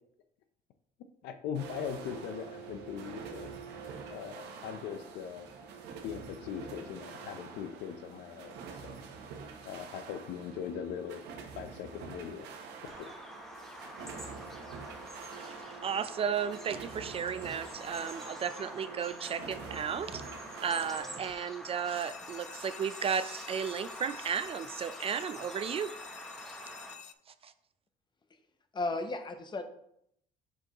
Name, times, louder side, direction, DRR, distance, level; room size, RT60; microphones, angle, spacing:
voice 1, 1.2-3.5 4.1-5.5 6.0-9.0 9.6-11.2 11.5-12.5, left 8 dB, 85° left, 9 dB, 0.6 m, -40 dB
sound 1, 1.5-21.3, right 5 dB, 90° right, 1.0 m, -46 dB
Bird vocalization bird call bird song, 12.9-26.9, equal, ahead, 1.0 m, -46 dB
voice 2, 15.8-20.2 20.6-25.9 27.4-27.5, right 7 dB, 35° right, 13 dB, 0.3 m, -34 dB
sound 2, 21.9-27.1, left 9 dB, 45° left, 0.4 m, -50 dB
voice 3, 28.7-29.6, left 2 dB, 25° left, 7 dB, 0.8 m, -34 dB
6.3 x 5.2 x 3.0 m, 0.71 s
cardioid pair, 110°, 17 cm